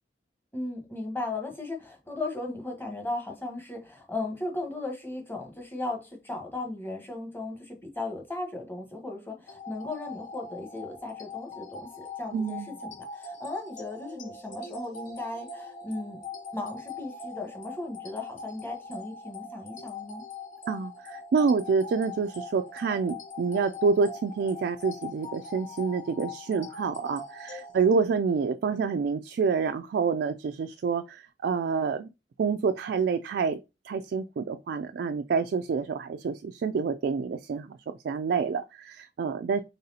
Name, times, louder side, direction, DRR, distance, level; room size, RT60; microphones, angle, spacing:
voice 1, 0.5-16.2 16.5-20.2, left 2 dB, 15° left, 1.0 m, -36 dB
sound 1, 9.5-27.9, left 3 dB, 45° left, 0.7 m, -42 dB
voice 2, 12.3-12.7 20.7-32.1 32.4-33.6 33.8-39.6, right 5 dB, 65° right, 0.3 m, -28 dB
4.0 x 3.6 x 2.7 m
head